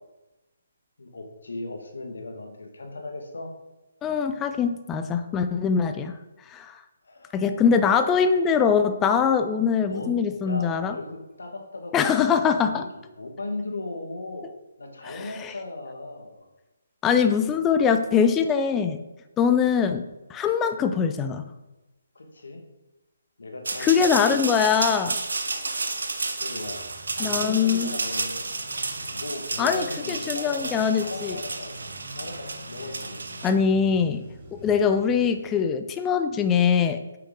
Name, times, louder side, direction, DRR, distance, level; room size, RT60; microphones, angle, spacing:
voice 1, 1.0-3.5 7.0-7.4 9.8-14.5 14.8-16.5 22.2-22.6 23.4-25.0 26.4-28.6 29.0-33.3, left 2 dB, 70° left, 3 dB, 1.7 m, -37 dB
voice 2, 4.0-6.2 6.5-6.8 7.3-10.9 11.9-12.8 15.0-15.5 17.0-19.0 19.4-20.0 20.3-21.4 23.8-25.2 27.2-27.9 29.6-31.3 33.4-34.2 34.6-37.0, left 6 dB, 15° left, 8 dB, 0.4 m, -22 dB
sound 1, 23.7-33.5, right 3 dB, 75° right, 1.0 m, -31 dB
Male speech man speaking / Motorcycle / Idling, 26.6-35.6, right 1 dB, 25° right, 2.9 m, -47 dB
8.2 x 5.9 x 3.7 m, 1.0 s
figure-of-eight pair, 145°, 0 cm